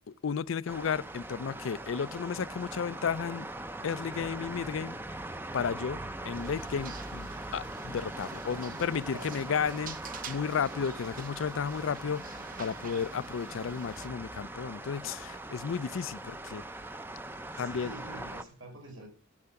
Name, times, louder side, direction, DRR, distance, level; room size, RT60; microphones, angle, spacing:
voice 1, 0.2-3.5 3.8-5.0 5.5-10.0 10.3-16.6 17.6-17.9, left 6 dB, 75° left, 0.4 m, -33 dB
sound 1, 0.7-18.4, right 1 dB, 10° right, 0.5 m, -41 dB
sound 2, 6.3-14.1, right 6 dB, 40° right, 0.8 m, -48 dB
voice 2, 8.4-8.8 9.1-9.6 17.5-19.1, right 1 dB, 80° right, 4.1 m, -47 dB
12.0 x 5.6 x 6.9 m
head